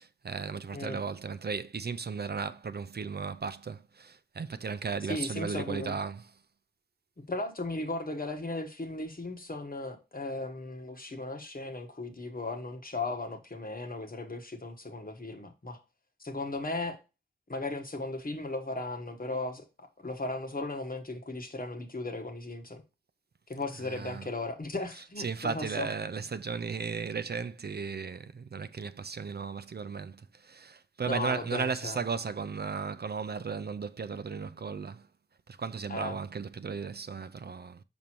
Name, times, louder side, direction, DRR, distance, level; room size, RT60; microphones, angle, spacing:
voice 1, 0.0-6.3 23.8-24.3 24.9-35.1 35.5-37.8, right 5 dB, 50° right, 0.4 m, -35 dB
voice 2, 5.0-6.0 7.3-15.8 16.2-17.0 17.5-22.8 23.5-25.9 31.0-32.0 35.9-36.2, left 2 dB, 45° left, 1.2 m, -36 dB
6.3 x 5.3 x 2.9 m
wide cardioid pair, 65°, 21 cm